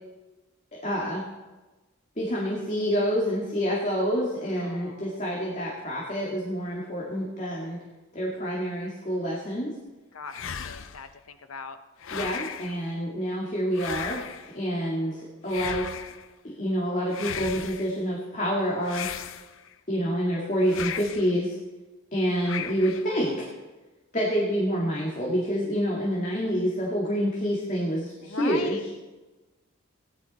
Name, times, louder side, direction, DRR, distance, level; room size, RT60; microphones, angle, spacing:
voice 1, 0.8-1.2 2.2-7.8 8.1-9.7 12.1-15.8 16.4-19.1 19.9-21.6 22.1-23.5 24.1-28.8, equal, 35° left, -4 dB, 2.2 m, -27 dB
voice 2, 4.5-5.2 10.1-11.8 28.2-29.0, left 4 dB, 80° left, 8 dB, 1.0 m, -40 dB
sound 1, 10.3-11.1 12.0-12.8 13.7-14.5 15.5-16.3 17.1-17.9 18.9-19.7 20.7-21.3 22.4-23.1, left 8 dB, 65° left, 0.6 m, -36 dB
17.0 x 10.5 x 4.3 m, 1.2 s
head